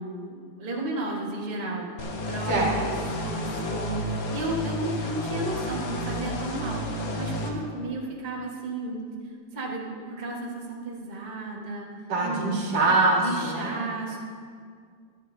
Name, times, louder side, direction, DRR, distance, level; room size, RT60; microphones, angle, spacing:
voice 1, 0.0-1.9 2.3-2.9 3.2-9.1 9.5-11.9 12.2-12.7 13.2-14.2, right 2 dB, 30° right, -3 dB, 0.8 m, -33 dB
sound 1, 2.0-7.5, equal, 55° left, 1.4 m, -31 dB
voice 2, 2.5-3.1 12.1-13.9, right 2 dB, 50° right, -3 dB, 2.8 m, -24 dB
24.5 x 9.0 x 2.8 m, 2.1 s
omnidirectional pair, 3.5 m